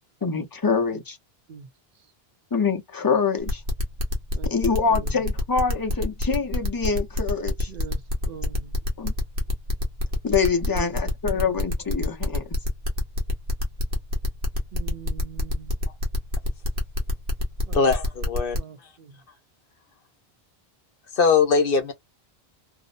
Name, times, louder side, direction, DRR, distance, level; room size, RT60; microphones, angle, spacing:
voice 1, 0.2-1.2 2.5-3.6 4.5-7.7 9.0-9.1 10.2-12.4, left 5 dB, 30° left, 0.5 m, -25 dB
sound 1, 3.5-18.6, left 2 dB, 85° right, 1.2 m, -25 dB
voice 2, 4.8-5.3 7.7-8.8 10.6-10.9 11.3-11.7 14.7-15.7 17.7-17.9 18.5-19.2, right 7 dB, 60° right, 0.7 m, -42 dB
voice 3, 17.7-18.6 21.1-21.9, left 5 dB, 65° left, 0.9 m, -21 dB
2.7 x 2.0 x 2.4 m
omnidirectional pair, 1.0 m